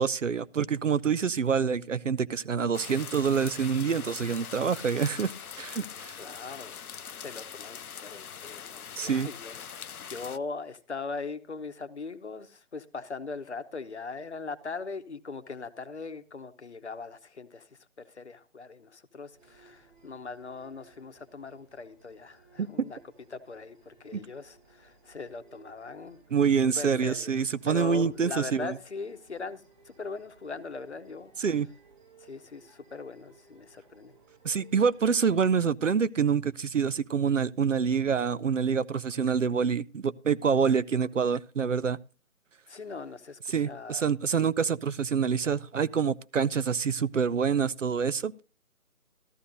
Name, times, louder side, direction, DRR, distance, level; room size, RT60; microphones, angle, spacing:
voice 1, 0.0-5.3 5.6-6.2 9.0-9.3 22.6-22.7 24.1-24.2 26.3-28.7 31.4-31.7 34.4-42.0 43.5-48.4, right 6 dB, 60° right, 0.5 m, -26 dB
sound 1, 2.7-10.4, left 8 dB, 85° left, 0.6 m, -42 dB
voice 2, 6.2-6.9 7.2-23.0 23.3-26.2 26.8-27.3 27.7-31.3 32.2-34.1 42.7-44.1, left 4 dB, 50° left, 0.9 m, -40 dB
sound 2, 19.3-35.3, right 4 dB, 35° right, 5.0 m, -60 dB
14.5 x 13.0 x 2.6 m
figure-of-eight pair, 160°, 43 cm